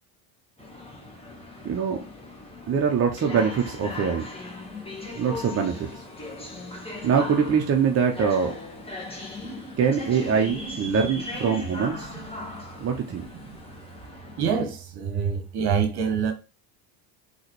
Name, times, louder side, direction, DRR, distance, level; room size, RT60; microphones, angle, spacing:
sound 1, 0.6-14.5, left 2 dB, 10° left, 1.3 m, -38 dB
voice 1, 1.6-2.0 2.7-4.3 5.2-6.0 7.0-8.5 9.8-12.1 12.8-13.2, right 6 dB, 30° right, 0.7 m, -23 dB
voice 2, 14.4-16.3, right 7 dB, 50° right, 1.4 m, -26 dB
3.9 x 3.0 x 3.1 m
hypercardioid pair, 85°, 48 cm